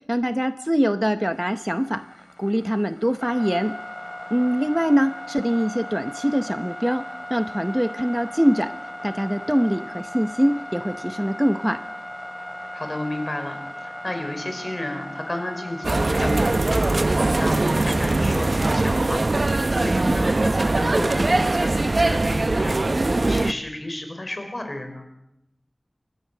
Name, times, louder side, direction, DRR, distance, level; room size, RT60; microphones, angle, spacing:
voice 1, 0.1-2.0 2.4-3.7 4.3-8.7 9.0-11.8, equal, 5° right, 10 dB, 0.8 m, -23 dB
sound 1, 1.3-18.9, left 1 dB, 25° left, 2.7 m, -38 dB
voice 2, 12.7-19.2 19.7-25.1, left 1 dB, 50° left, 6 dB, 5.3 m, -32 dB
sound 2, 15.8-23.5, right 2 dB, 65° right, 0.8 m, -21 dB
29.5 x 14.0 x 7.5 m, 0.83 s
wide cardioid pair, 50°, 0 cm